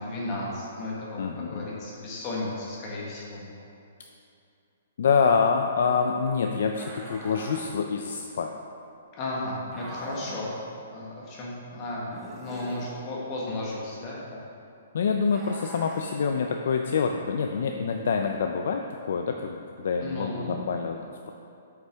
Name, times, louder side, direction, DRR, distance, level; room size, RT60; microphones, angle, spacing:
voice 1, 0.0-3.4 9.2-10.5 10.9-14.4 20.0-20.6, left 1 dB, 25° left, -5 dB, 1.3 m, -34 dB
voice 2, 1.2-1.7 5.0-8.6 14.9-21.3, left 5 dB, 60° left, 4 dB, 0.4 m, -26 dB
sound 1, 6.8-7.7 9.7-10.5 12.1-12.9 15.3-16.1, right 1 dB, 10° right, 0.6 m, -42 dB
7.7 x 5.7 x 3.5 m, 2.6 s
hypercardioid pair, 170°, 0 cm